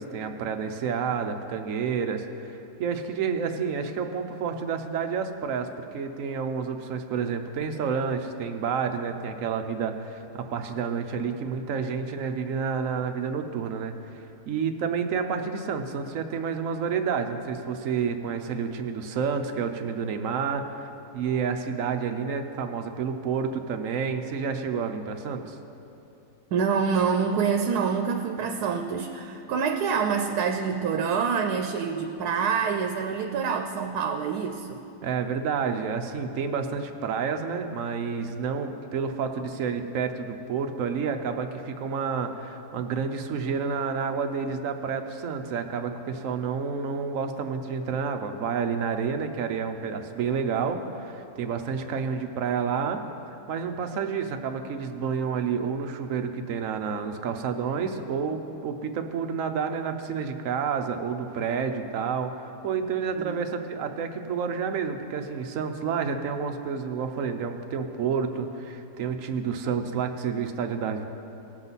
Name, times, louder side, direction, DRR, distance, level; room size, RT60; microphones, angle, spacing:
voice 1, 0.0-13.9 14.5-25.6 35.0-53.0 53.3-71.0, right 6 dB, 65° right, 6 dB, 1.0 m, -29 dB
voice 2, 26.5-34.8 63.2-63.4, right 6 dB, 90° right, 4 dB, 1.2 m, -26 dB
18.5 x 7.5 x 4.1 m, 2.9 s
omnidirectional pair, 1.6 m